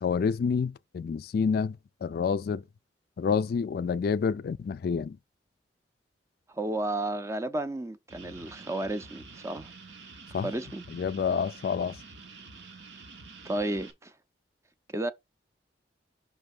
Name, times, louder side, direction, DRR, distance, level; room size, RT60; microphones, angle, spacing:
voice 1, 0.0-2.6 3.2-5.2 10.3-10.5 10.9-12.0, left 6 dB, 55° left, 0.3 m, -28 dB
voice 2, 6.5-9.7 10.4-10.8 13.4-14.1 14.9-15.1, right 1 dB, 15° right, 0.5 m, -32 dB
sound 1, 8.1-13.9, right 4 dB, 80° right, 1.1 m, -48 dB
5.7 x 3.3 x 5.3 m
head